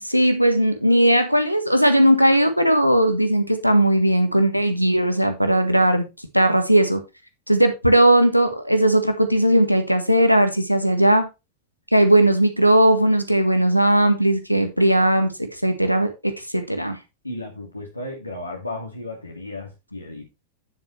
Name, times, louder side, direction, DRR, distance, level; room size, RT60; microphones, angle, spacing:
voice 1, 0.0-6.1 6.3-7.0 7.5-11.3 11.9-17.0, right 1 dB, 90° right, 1.5 m, -18 dB
voice 2, 17.2-20.3, left 2 dB, 85° left, 2.1 m, -34 dB
9.4 x 7.7 x 3.2 m
figure-of-eight pair, 90°, 0 cm